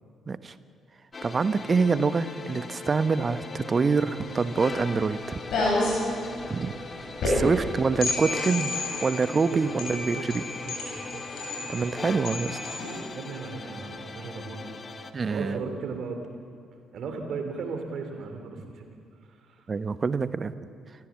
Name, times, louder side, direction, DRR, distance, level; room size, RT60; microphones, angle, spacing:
sound 1, 1.1-15.1, left 3 dB, 35° left, 2.0 m, -40 dB
voice 1, 1.2-5.4 6.5-6.7 7.2-8.7 9.0-10.4 11.7-12.6 15.1-15.6 19.7-20.5, right 4 dB, 35° right, 14 dB, 1.0 m, -26 dB
sound 2, 4.2-13.0, left 2 dB, 60° left, 7.4 m, -31 dB
voice 2, 7.8-8.1 9.5-9.8 10.1-11.2 13.1-14.8 15.2-16.3 16.9-18.9, right 4 dB, 55° right, 5 dB, 3.1 m, -36 dB
28.5 x 16.0 x 7.3 m, 2.3 s
figure-of-eight pair, 40°, 0 cm